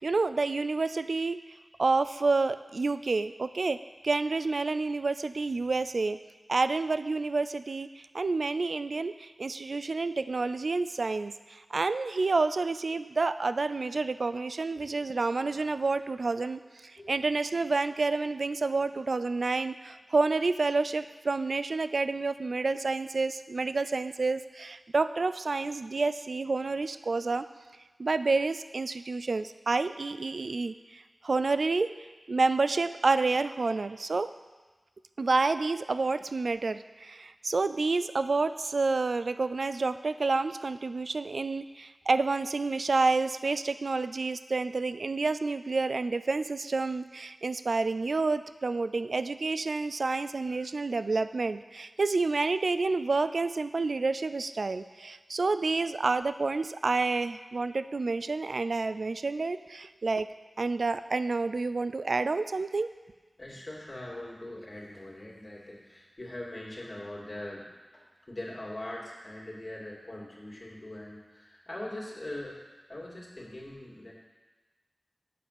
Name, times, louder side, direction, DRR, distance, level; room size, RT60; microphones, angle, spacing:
voice 1, 0.0-1.4 1.8-3.8 4.0-6.2 6.5-27.4 28.0-31.9 32.3-34.3 35.2-60.3 60.6-62.9, right 3 dB, 70° right, 12 dB, 0.3 m, -29 dB
voice 2, 63.4-67.7 67.9-72.6 72.9-74.1, left 1 dB, 45° left, -4 dB, 2.2 m, -42 dB
8.5 x 5.2 x 6.6 m, 1.3 s
wide cardioid pair, 60°, 0 cm